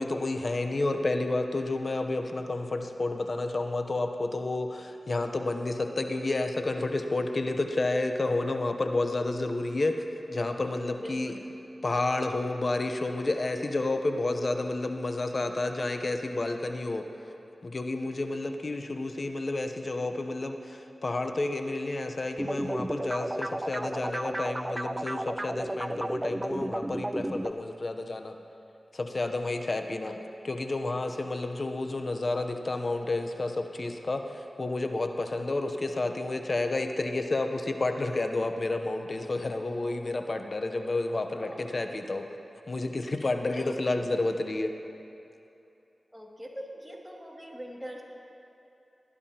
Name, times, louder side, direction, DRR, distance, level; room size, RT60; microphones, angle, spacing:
voice 1, 0.0-11.3 11.8-17.1 17.6-28.3 28.9-30.2 30.4-42.3 42.7-44.7, left 2 dB, 55° left, 6 dB, 0.8 m, -30 dB
voice 2, 10.9-11.4 29.8-30.3 41.3-41.7 43.5-44.0 46.1-48.0, equal, 5° right, -2 dB, 2.3 m, -43 dB
sound 1, 22.4-27.5, right 1 dB, 25° right, 0.3 m, -33 dB
19.5 x 11.0 x 2.9 m, 2.8 s
cardioid pair, 40°, 0 cm